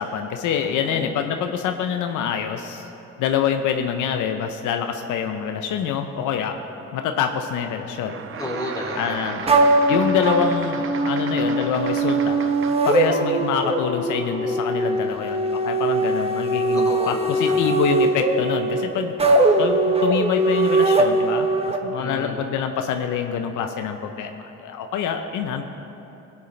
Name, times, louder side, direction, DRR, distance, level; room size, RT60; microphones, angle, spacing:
voice 1, 0.0-2.9 3.2-6.6 6.9-8.2 9.0-9.4 9.9-12.4 12.9-19.1 19.6-25.6, left 8 dB, 85° left, 6 dB, 0.7 m, -26 dB
voice 2, 0.6-1.2 8.4-10.2 16.8-17.8 19.2-19.6 22.0-22.4, left 1 dB, 10° left, -5 dB, 2.6 m, -33 dB
sound 1, 8.0-13.0, right 7 dB, 45° right, 0.6 m, -35 dB
sound 2, 9.5-21.8, right 2 dB, 20° right, 0.9 m, -21 dB
17.0 x 8.4 x 3.2 m, 3.0 s
cardioid pair, 90°, 30 cm